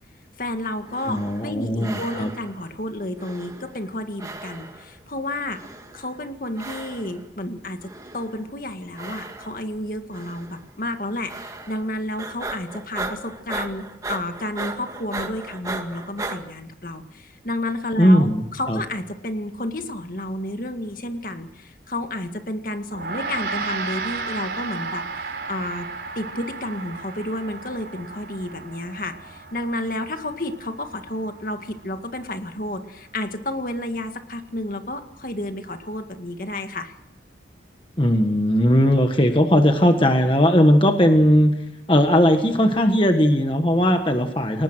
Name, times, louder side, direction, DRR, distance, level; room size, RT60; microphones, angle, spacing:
voice 1, 0.4-5.6 5.9-25.9 26.2-37.0, left 1 dB, 50° left, 7 dB, 2.0 m, -31 dB
sound 1, 0.8-1.5 1.8-2.6 3.2-4.9 5.5-6.1 6.5-7.2 7.8-8.4 8.9-9.7 10.1-10.6 11.3-11.9 12.2-16.4, right 2 dB, 20° right, 2.0 m, -36 dB
voice 2, 1.1-2.3 18.0-18.4 18.7-18.8 38.0-41.5 41.9-44.6, equal, 30° left, 5 dB, 1.5 m, -18 dB
Gong, 22.9-32.5, right 4 dB, 65° right, 3.9 m, -34 dB
29.0 x 19.0 x 6.3 m, 0.80 s
head